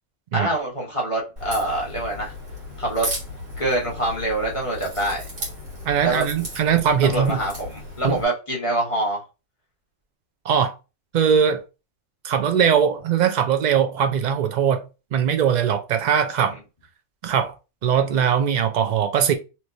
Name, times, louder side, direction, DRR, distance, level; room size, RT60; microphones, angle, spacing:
voice 1, 0.3-2.3 2.8-3.1 3.6-5.2 6.0-6.2 7.0-9.2, right 2 dB, 25° left, 1.0 m, -25 dB
Crack, 1.4-8.3, left 1 dB, 80° right, 2.0 m, -35 dB
voice 2, 5.9-7.4 8.0-8.2 10.4-10.7 11.1-11.6 12.2-14.8 15.1-16.5 17.2-17.5 17.8-19.3, right 8 dB, 65° right, 0.4 m, -20 dB
3.1 x 2.8 x 2.6 m
omnidirectional pair, 1.3 m